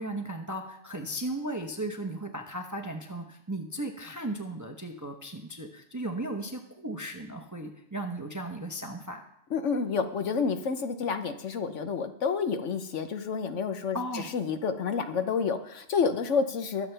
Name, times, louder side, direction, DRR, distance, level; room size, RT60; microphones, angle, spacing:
voice 1, 0.0-9.2 13.9-14.3, right 1 dB, 15° right, 4 dB, 0.7 m, -36 dB
voice 2, 9.5-16.9, left 5 dB, 65° left, 8 dB, 1.1 m, -29 dB
21.5 x 7.3 x 3.4 m, 0.79 s
omnidirectional pair, 1.4 m